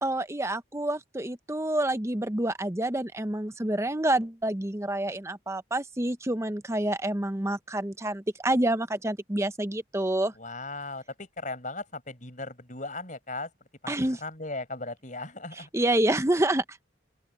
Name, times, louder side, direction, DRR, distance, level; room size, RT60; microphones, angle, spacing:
voice 1, 0.0-10.3 13.9-14.2 15.7-16.8, right 1 dB, 15° right, 0.7 m, -28 dB
voice 2, 10.3-13.5 13.8-15.7, left 2 dB, 40° left, 5.4 m, -37 dB
open air
head